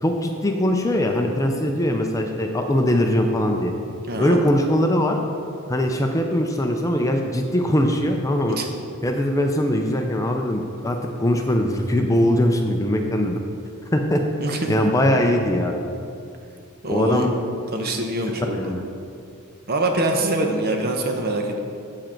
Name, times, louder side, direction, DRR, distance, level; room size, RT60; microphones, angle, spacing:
voice 1, 0.0-3.7 4.2-5.2 5.7-8.6 9.0-13.4 13.9-14.2 14.7-15.7 16.9-17.3 18.5-18.8, left 1 dB, 15° left, 3 dB, 0.5 m, -21 dB
voice 2, 4.1-4.4 8.5-8.7 14.4-14.7 16.8-17.3 17.7-18.7 19.7-21.6, right 1 dB, 45° right, 3 dB, 0.8 m, -24 dB
7.6 x 7.4 x 4.4 m, 2.4 s
head